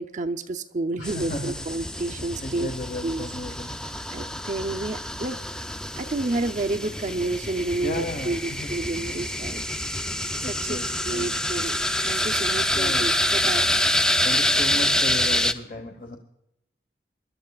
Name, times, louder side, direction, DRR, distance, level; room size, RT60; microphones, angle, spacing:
voice 1, 0.0-2.7 3.0-3.3 4.1-5.4 6.0-9.6 10.5-10.8 11.1-13.7, right 2 dB, 45° right, 7 dB, 0.6 m, -30 dB
voice 2, 1.0-1.5 2.4-3.7 7.8-8.7 10.4-11.4 12.7-13.1 14.2-16.2, left 1 dB, 50° left, 4 dB, 1.1 m, -34 dB
sound 1, 1.0-15.5, left 1 dB, 5° left, 0.4 m, -26 dB
25.0 x 12.0 x 2.4 m, 0.82 s
head